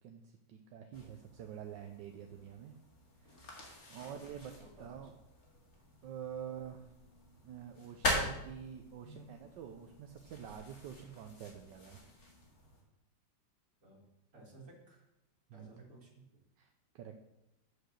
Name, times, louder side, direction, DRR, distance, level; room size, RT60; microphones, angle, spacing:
voice 1, 0.0-2.7 3.2-5.1 6.0-6.9 7.4-12.0 15.5-15.8 16.6-17.2, right 8 dB, 75° right, 4 dB, 1.4 m, -48 dB
sound 1, 0.9-12.8, left 1 dB, 50° left, 2.4 m, -43 dB
voice 2, 4.0-4.9 6.4-6.5 9.0-9.4 13.8-14.1 14.3-15.1 15.5-16.4, right 3 dB, 50° right, -1 dB, 2.7 m, -56 dB
8.2 x 6.5 x 6.5 m, 0.89 s
omnidirectional pair, 2.0 m